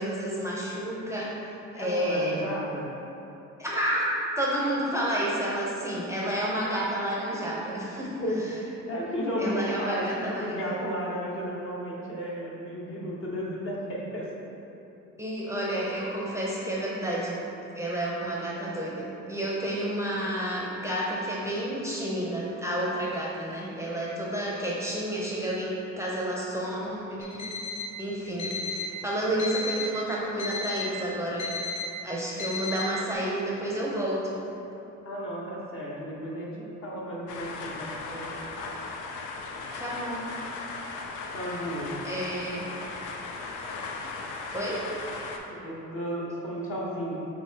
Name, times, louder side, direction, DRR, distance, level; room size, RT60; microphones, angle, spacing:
voice 1, 0.0-1.4 1.7-2.4 3.6-4.1 4.4-8.2 9.4-10.6 15.2-17.4 17.7-27.4 28.0-31.5 32.0-34.4 39.8-40.2 42.0-42.8 44.5-44.8, right 1 dB, 10° right, -5 dB, 0.6 m, -30 dB
voice 2, 1.8-2.9 8.2-8.6 8.9-14.3 35.0-38.4 41.3-42.0 45.5-47.1, equal, 45° left, -4 dB, 1.0 m, -33 dB
Alarm, 27.2-27.9 28.4-28.9 29.4-29.9 30.4-30.9 31.4-31.9 32.4-32.9, left 4 dB, 65° left, 0.8 m, -33 dB
sound 1, 37.3-45.4, left 3 dB, 90° left, 0.5 m, -37 dB
5.4 x 2.8 x 2.8 m, 2.8 s
cardioid pair, 90°, 30 cm